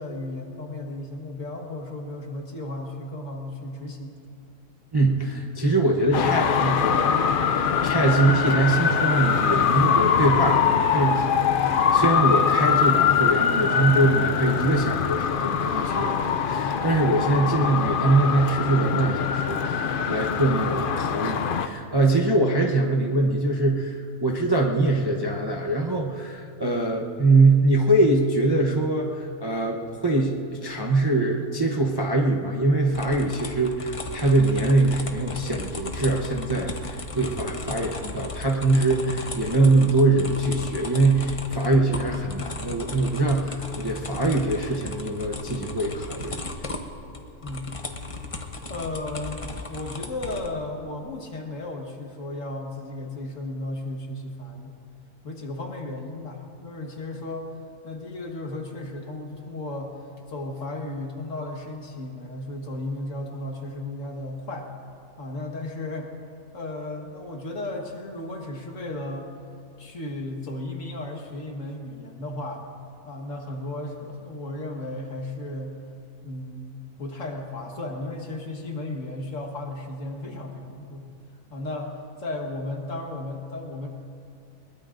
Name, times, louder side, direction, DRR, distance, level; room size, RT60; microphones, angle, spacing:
voice 1, 0.0-4.2 47.4-47.8 48.7-54.7 55.2-57.5 57.8-64.7 65.2-66.1 66.5-69.3 69.8-72.7 73.1-75.8 76.2-81.1 81.5-83.9, left 2 dB, 55° left, 1 dB, 1.8 m, -34 dB
voice 2, 4.9-7.3 7.5-16.2 16.4-46.4, right 2 dB, 20° right, 0 dB, 0.7 m, -23 dB
Traffic noise roadway noise, 6.1-21.7, left 7 dB, 75° left, 0.4 m, -23 dB
sound 1, 32.9-50.5, left 2 dB, 30° left, 0.8 m, -36 dB
22.0 x 20.5 x 2.6 m, 2.4 s
omnidirectional pair, 1.6 m